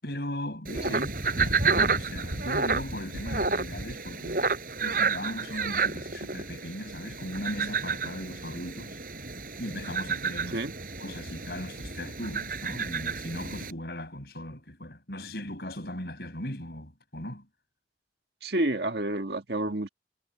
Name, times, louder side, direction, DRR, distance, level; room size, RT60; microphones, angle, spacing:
voice 1, 0.0-4.5 4.8-9.0 9.6-10.6 11.0-17.5, left 1 dB, 65° left, 7.0 m, -38 dB
sound 1, 0.7-13.7, right 4 dB, 50° right, 6.5 m, -30 dB
voice 2, 18.4-19.9, right 1 dB, 70° right, 1.9 m, -29 dB
head